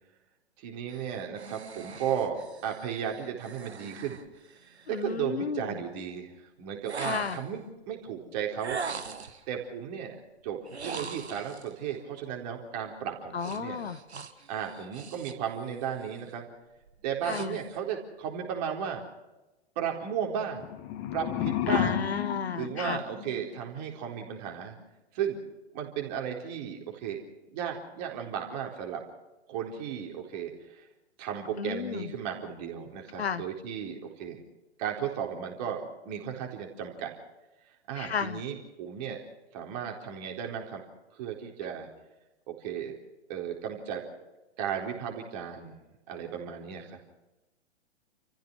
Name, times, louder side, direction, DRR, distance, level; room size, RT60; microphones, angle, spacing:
voice 1, 0.6-4.2 4.9-8.8 9.5-13.8 14.5-16.5 17.0-19.0 19.8-20.6 21.1-22.0 22.5-24.8 25.1-25.4 25.7-27.2 27.5-29.0 29.5-30.8 31.2-34.4 34.8-37.1 37.9-39.2 39.5-40.8 41.1-41.9 42.5-42.9 43.3-44.1 44.6-45.8 46.1-47.0, right 8 dB, 35° right, 2 dB, 4.2 m, -35 dB
sound 1, 0.9-5.1 6.9-7.6 8.6-9.5 10.7-11.7 13.4-15.5 15.8-16.2 16.8-17.8, right 5 dB, 70° right, 1.8 m, -42 dB
voice 2, 4.9-5.8 7.0-7.4 13.3-14.0 17.2-17.6 21.7-23.0 31.6-32.1 33.2-33.4 38.0-38.4, left 6 dB, 65° left, 13 dB, 1.3 m, -33 dB
sound 2, 20.5-23.6, left 11 dB, 30° left, 1.7 m, -32 dB
29.0 x 15.0 x 6.3 m, 1.0 s
figure-of-eight pair, 115°, 34 cm